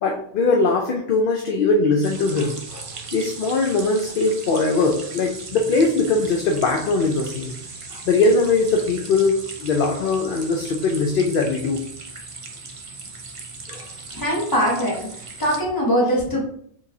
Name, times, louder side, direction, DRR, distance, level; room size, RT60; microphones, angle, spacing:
voice 1, 0.0-7.6 7.9-11.8 13.7-13.9, left 3 dB, 60° left, 1 dB, 0.6 m, -21 dB
sound 1, 2.0-15.6, right 3 dB, 45° right, 0.4 m, -38 dB
voice 2, 14.1-16.4, equal, 20° left, -3 dB, 1.1 m, -22 dB
4.5 x 3.0 x 2.6 m, 0.64 s
omnidirectional pair, 1.3 m